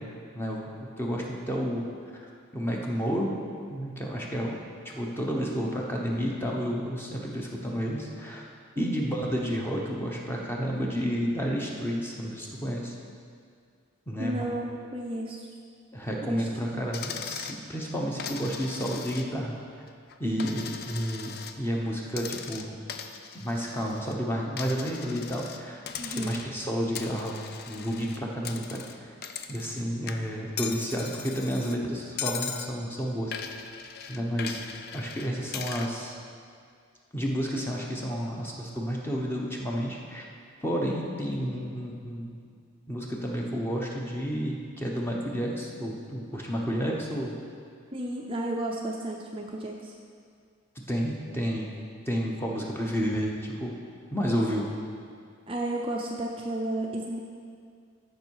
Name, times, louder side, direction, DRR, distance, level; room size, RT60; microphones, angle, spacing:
voice 1, 0.3-1.9 2.1-3.3 3.7-4.6 4.8-8.4 8.8-12.9 14.1-14.4 15.9-19.5 20.2-21.3 21.6-22.8 23.3-25.8 26.1-27.4 27.7-29.1 29.5-33.3 34.1-34.6 34.9-36.2 37.1-40.2 40.6-42.4 42.9-47.3 50.9-51.7 52.1-53.8 54.1-54.7, equal, 10° left, -2 dB, 0.9 m, -31 dB
voice 2, 8.8-9.1 14.2-15.5 16.3-16.9 20.2-20.7 26.0-26.4 47.9-49.9 55.5-57.2, right 1 dB, 25° right, -1 dB, 0.5 m, -33 dB
Coin (dropping), 16.9-17.6 18.2-19.5 19.9-21.6 22.1-24.2 24.6-25.6 25.9-26.6 26.9-29.8 30.1-31.8 32.2-32.7 33.3-35.9, left 7 dB, 45° left, 0.4 m, -39 dB
14.0 x 5.4 x 4.7 m, 2.2 s
head